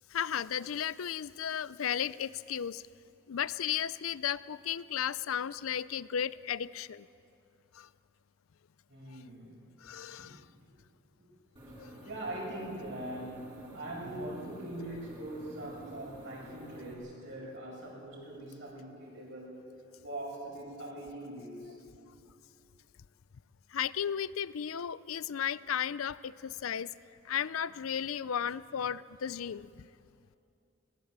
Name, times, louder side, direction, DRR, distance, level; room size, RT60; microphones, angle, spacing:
voice 1, 0.1-2.8 3.3-7.1 7.7-7.9 9.8-10.4 11.8-11.9 23.7-26.9 27.2-29.9, left 9 dB, 85° left, 18 dB, 0.5 m, -34 dB
voice 2, 8.9-9.6 10.2-10.3 11.2-11.3 12.0-19.6 20.0-21.8, right 1 dB, 60° right, -3 dB, 6.6 m, -42 dB
sound 1, 11.6-16.9, equal, 25° right, 3.3 m, -50 dB
20.5 x 19.0 x 7.4 m, 2.5 s
head